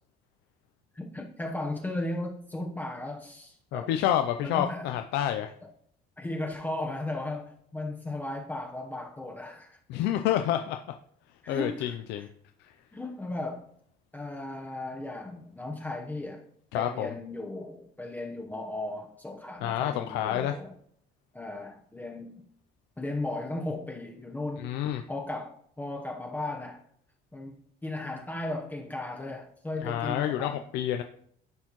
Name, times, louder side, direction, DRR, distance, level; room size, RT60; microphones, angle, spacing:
voice 1, 0.9-3.9 4.4-4.9 6.2-9.8 11.4-12.3 12.9-13.7 14.1-16.4 16.7-20.7 21.3-22.4 23.0-24.7 25.1-26.8 27.3-30.6, left 2 dB, 10° left, 0 dB, 0.9 m, -36 dB
voice 2, 3.7-5.5 9.9-10.8 11.5-12.3 12.6-12.7 16.7-17.1 19.6-20.6 24.6-25.0 29.8-31.0, left 11 dB, 90° left, 6 dB, 0.4 m, -28 dB
11.5 x 4.3 x 3.0 m, 0.67 s
cardioid pair, 110°, 17 cm